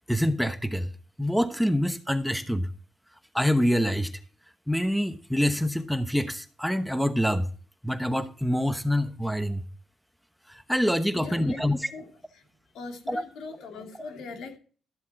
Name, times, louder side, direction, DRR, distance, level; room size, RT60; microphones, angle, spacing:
voice 1, 0.1-0.9 1.2-2.7 3.3-4.1 4.7-7.5 7.8-9.6 10.5-11.9 13.1-13.2, equal, ahead, 1.0 m, -26 dB
voice 2, 11.1-11.6 11.9-12.4 12.7-14.6, left 4 dB, 80° left, 2.6 m, -41 dB
13.0 x 7.4 x 4.1 m
cardioid pair, 90°, 0 cm